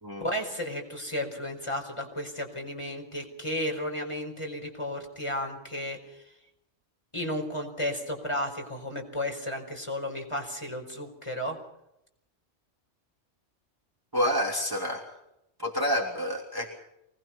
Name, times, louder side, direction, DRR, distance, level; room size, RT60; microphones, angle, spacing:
voice 1, 0.2-6.2 7.1-11.6, left 1 dB, 25° left, 3 dB, 4.8 m, -33 dB
voice 2, 14.1-15.1 15.6-16.7, equal, 15° right, 0 dB, 3.2 m, -28 dB
25.0 x 20.0 x 5.9 m, 0.81 s
omnidirectional pair, 1.3 m